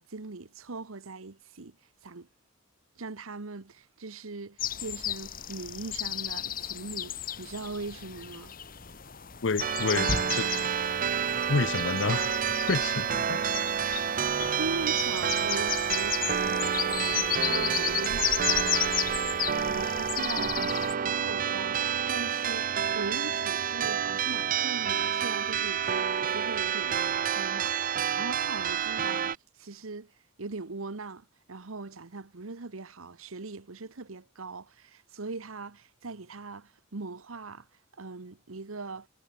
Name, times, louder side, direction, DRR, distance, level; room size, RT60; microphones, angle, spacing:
voice 1, 0.0-1.8 2.0-2.3 3.0-8.5 14.2-19.1 19.3-30.1 30.4-37.7 37.9-39.1, right 3 dB, 90° right, 1.1 m, -40 dB
sound 1, 4.6-20.9, left 10 dB, 45° left, 1.6 m, -34 dB
voice 2, 9.4-10.5 11.5-12.3 12.6-13.4 13.8-14.0, left 4 dB, 60° left, 0.7 m, -29 dB
sound 2, 9.6-29.4, right 8 dB, 40° right, 0.5 m, -29 dB
head